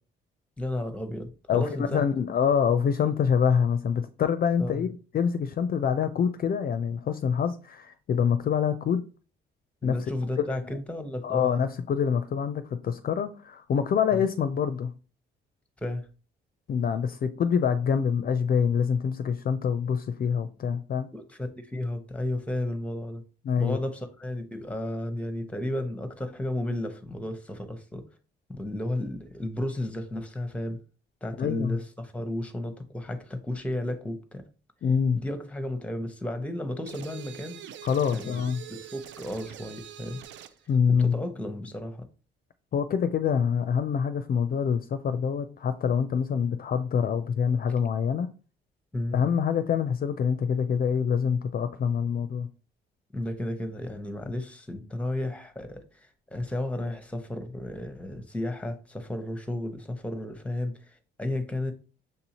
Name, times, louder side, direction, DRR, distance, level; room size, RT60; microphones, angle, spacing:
voice 1, 0.6-2.0 4.6-4.9 9.8-11.6 14.1-14.2 15.8-16.1 20.7-20.8 21.1-23.2 23.6-28.1 28.5-30.8 31.2-34.4 35.1-37.6 38.1-38.4 38.7-40.2 41.0-42.1 48.9-49.2 53.1-61.7, left 1 dB, 5° left, 0.8 m, -33 dB
voice 2, 1.5-9.0 9.8-10.0 10.4-10.8 11.2-14.9 16.7-21.1 23.5-23.8 31.4-31.8 34.8-35.2 37.8-38.6 40.7-41.1 42.7-48.3 49.1-52.5, left 7 dB, 50° left, 0.4 m, -25 dB
sound 1, 36.9-40.6, right 11 dB, 70° right, 0.4 m, -44 dB
6.6 x 2.7 x 2.9 m
cardioid pair, 90°, 20 cm